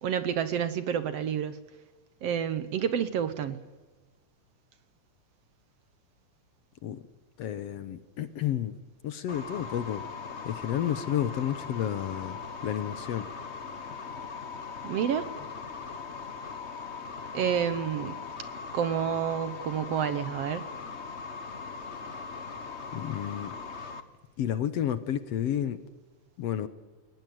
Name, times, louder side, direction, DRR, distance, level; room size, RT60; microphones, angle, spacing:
voice 1, 0.0-1.6 2.2-3.6 14.8-15.3 17.3-18.2 18.7-20.7, right 8 dB, 65° right, 1.8 m, -29 dB
voice 2, 7.4-8.7 9.0-10.0 10.5-12.4 12.6-13.3 22.9-23.5 24.4-25.8 26.4-26.7, left 10 dB, 65° left, 1.9 m, -31 dB
sound 1, 9.3-24.0, left 5 dB, 45° left, 0.8 m, -40 dB
21.5 x 19.0 x 9.3 m
omnidirectional pair, 3.4 m